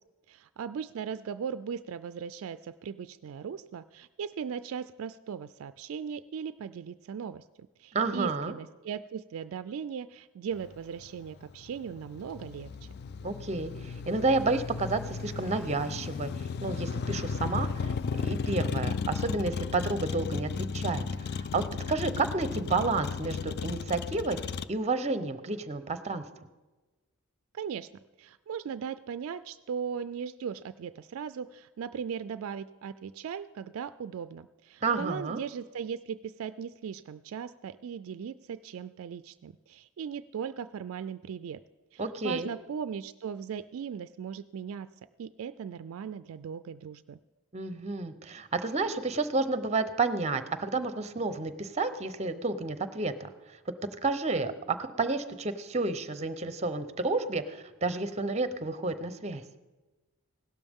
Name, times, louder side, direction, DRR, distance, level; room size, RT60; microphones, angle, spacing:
voice 1, 0.3-12.7 27.5-27.9 28.2-41.6 41.9-44.9 45.2-47.2, right 7 dB, 65° right, 13 dB, 0.3 m, -38 dB
voice 2, 7.9-8.5 13.2-16.3 16.6-17.9 18.2-21.6 21.9-24.4 24.7-26.2 34.8-35.4 42.0-42.5 47.5-53.3 54.0-59.4, right 3 dB, 30° right, 11 dB, 0.7 m, -30 dB
Motor vehicle (road), 10.6-24.7, left 5 dB, 45° left, 0.3 m, -35 dB
17.0 x 12.5 x 3.6 m, 1.2 s
head